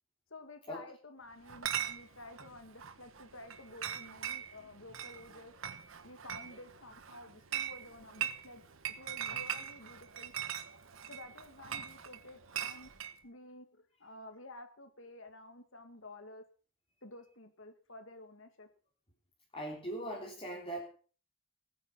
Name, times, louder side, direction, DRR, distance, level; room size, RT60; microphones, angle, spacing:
voice 1, 0.3-5.5 6.0-8.6 8.9-10.3 11.0-12.9 13.2-16.4 17.0-18.7, left 2 dB, 60° left, 7 dB, 2.2 m, -52 dB
Chatter / Chink clink, 1.5-13.2, right 9 dB, 65° right, 1.3 m, -41 dB
voice 2, 19.5-20.9, right 1 dB, 25° left, -3 dB, 3.5 m, -40 dB
19.5 x 9.6 x 5.7 m, 0.41 s
head